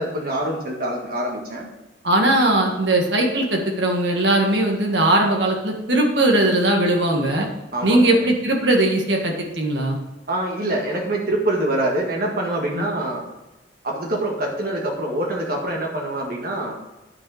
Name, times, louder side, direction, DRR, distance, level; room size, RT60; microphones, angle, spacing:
voice 1, 0.0-1.7 7.7-8.3 10.3-13.2 13.8-16.8, right 1 dB, 55° right, -1 dB, 1.8 m, -25 dB
voice 2, 2.0-7.5 7.8-10.0 12.7-12.9, right 1 dB, 70° right, 1 dB, 1.8 m, -19 dB
9.8 x 6.6 x 4.9 m, 1.0 s
head